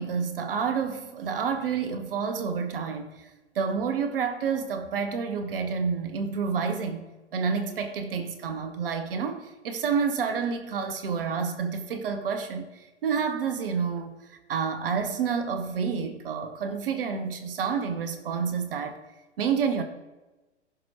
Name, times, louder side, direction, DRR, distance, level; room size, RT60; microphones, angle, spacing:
voice 1, 0.0-3.3 3.5-7.0 7.3-19.0 19.4-19.8, right 6 dB, 50° right, 7 dB, 1.1 m, -29 dB
15.5 x 6.1 x 2.9 m, 1.1 s
figure-of-eight pair, 110°, 35 cm